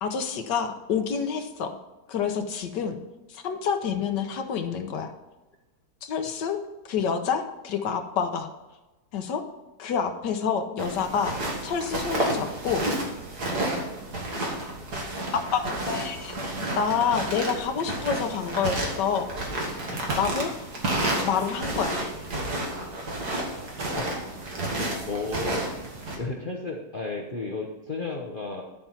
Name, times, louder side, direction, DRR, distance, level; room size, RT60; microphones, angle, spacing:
voice 1, 0.0-1.8 2.1-3.0 3.3-5.1 6.0-6.6 6.8-8.5 9.1-9.4 9.8-12.8 15.3-16.4 16.8-19.3 20.1-20.5 21.2-22.0, left 6 dB, 80° left, 6 dB, 1.5 m, -28 dB
sound 1, 10.8-26.2, right 1 dB, 65° right, 2.4 m, -31 dB
voice 2, 24.0-24.3 25.1-25.6 26.2-28.6, left 3 dB, 40° left, 0 dB, 0.9 m, -33 dB
12.0 x 4.6 x 5.7 m, 1.1 s
omnidirectional pair, 1.9 m